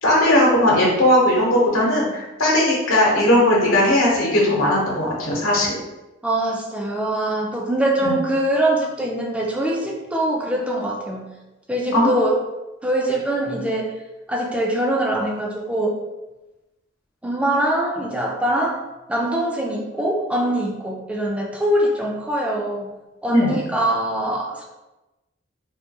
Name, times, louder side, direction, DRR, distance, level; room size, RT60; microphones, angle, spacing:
voice 1, 0.0-5.8 8.0-8.1 11.9-12.1 23.3-23.6, left 1 dB, 90° left, -3 dB, 0.9 m, -18 dB
voice 2, 6.2-11.3 11.7-12.3 12.8-14.0 14.3-16.0 17.2-18.8 19.1-22.9 23.2-24.7, right 1 dB, 5° right, 0 dB, 0.3 m, -23 dB
3.4 x 2.2 x 2.8 m, 1.0 s
head